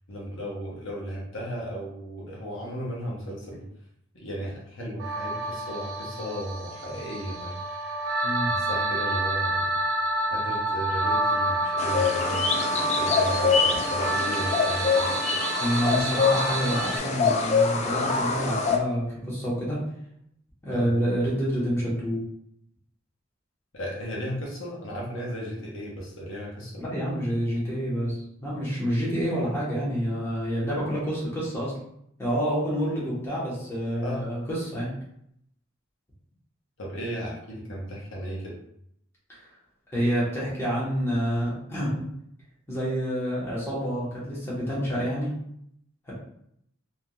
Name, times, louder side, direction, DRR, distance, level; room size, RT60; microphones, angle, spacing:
voice 1, 0.1-3.7 4.1-7.6 8.5-9.7 10.3-15.1 20.7-20.9 23.7-26.8 34.0-34.3 36.8-38.6, equal, 70° left, -4 dB, 1.0 m, -35 dB
sound 1, 5.0-17.0, right 2 dB, 80° right, 0.6 m, -28 dB
sound 2, 11.8-18.8, left 5 dB, 35° left, 0.3 m, -25 dB
voice 2, 15.6-19.8 20.6-22.2 26.8-31.7 32.2-34.9 39.3-39.4 39.9-42.1 42.7-45.3 46.1-46.2, equal, 15° left, -7 dB, 1.1 m, -28 dB
3.4 x 2.7 x 2.3 m, 0.73 s
head